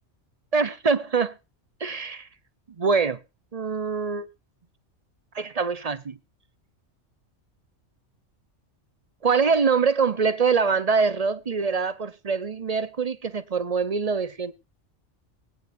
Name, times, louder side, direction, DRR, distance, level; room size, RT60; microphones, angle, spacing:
voice 1, 0.5-1.3 1.8-2.3 2.8-3.2 3.5-4.3 5.3-6.2 9.2-14.5, right 5 dB, 35° right, 0.8 m, -24 dB
20.5 x 9.6 x 2.6 m
omnidirectional pair, 1.2 m